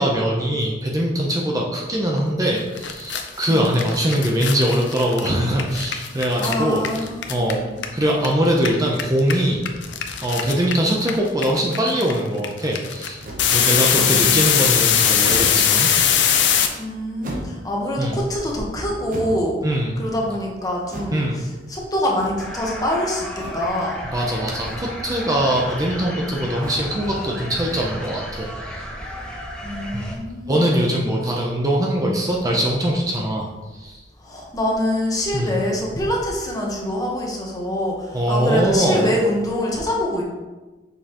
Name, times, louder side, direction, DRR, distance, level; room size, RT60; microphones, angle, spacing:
voice 1, 0.0-6.8 7.3-7.7 7.9-9.6 10.2-13.2 13.5-15.9 18.0-18.2 19.6-20.0 21.1-21.4 24.1-28.8 29.9-30.1 30.5-33.5 33.7-34.0 35.3-35.5 38.1-39.1, right 1 dB, 20° right, -2 dB, 0.6 m, -22 dB
sound 1, 2.5-2.6 2.8-8.3 8.5-16.7, left 8 dB, 80° left, 0.6 m, -20 dB
voice 2, 6.4-7.5 13.9-14.7 16.8-19.6 20.0-24.0 29.6-30.7 31.2-31.5 34.2-40.2, left 1 dB, 20° left, -2 dB, 1.1 m, -25 dB
sound 2, 13.2-13.6 14.1-14.5 15.2-15.7 17.2-17.7 19.1-19.5 20.8-21.2 22.1-22.6 23.3-23.7 24.6-25.0 25.4-25.8 26.5-26.9 27.6-28.0, right 1 dB, 50° right, 0.9 m, -35 dB
sound 3, 22.4-30.2, equal, 5° left, 0.9 m, -34 dB
6.5 x 5.4 x 3.0 m, 1.2 s
head